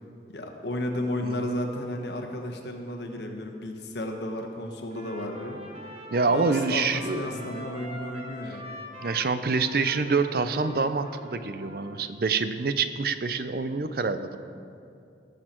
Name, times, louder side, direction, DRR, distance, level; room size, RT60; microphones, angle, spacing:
voice 1, 0.3-5.6 6.2-8.8, left 1 dB, 75° left, 3 dB, 1.3 m, -33 dB
Trumpet, 4.9-12.0, equal, 35° right, 1.3 m, -43 dB
voice 2, 6.1-7.5 9.0-14.4, right 4 dB, 55° right, 11 dB, 0.5 m, -26 dB
19.0 x 6.6 x 4.5 m, 2.6 s
head